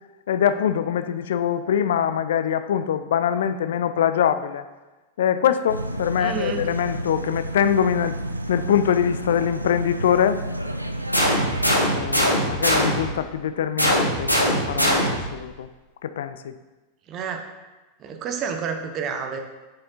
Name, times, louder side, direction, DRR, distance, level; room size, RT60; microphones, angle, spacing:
voice 1, 0.3-4.6 5.2-8.2 8.5-10.4 11.9-15.7 16.0-16.6, left 9 dB, 60° left, 12 dB, 0.3 m, -23 dB
sound 1, 5.7-11.9, right 1 dB, 85° right, 0.4 m, -31 dB
voice 2, 6.2-6.6 17.1-17.4 18.0-19.4, right 6 dB, 35° right, 5 dB, 0.8 m, -29 dB
sound 2, 11.1-13.2 13.8-15.4, equal, 90° left, 1.1 m, -21 dB
7.6 x 6.8 x 2.8 m, 1.2 s
figure-of-eight pair, 90°, 0 cm